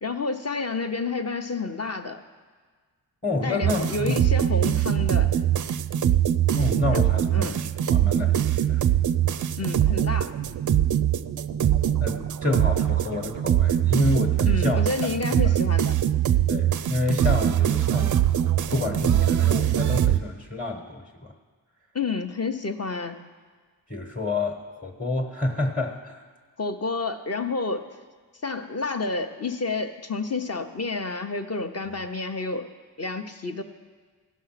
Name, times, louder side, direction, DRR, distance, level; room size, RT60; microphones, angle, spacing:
voice 1, 0.0-2.2 3.4-5.3 6.9-7.0 7.3-7.6 9.6-10.3 14.5-15.9 21.9-23.3 26.6-27.9 28.4-32.7 33.0-33.6, left 3 dB, 35° left, 6 dB, 0.9 m, -29 dB
voice 2, 3.2-4.2 6.5-8.8 12.0-14.8 15.4-15.5 16.5-18.2 18.7-21.3 23.9-26.2, left 2 dB, 20° left, 1 dB, 1.3 m, -29 dB
sound 1, 3.6-20.2, right 11 dB, 45° right, 0.4 m, -22 dB
16.5 x 5.6 x 5.8 m, 1.5 s
cardioid pair, 65°, 46 cm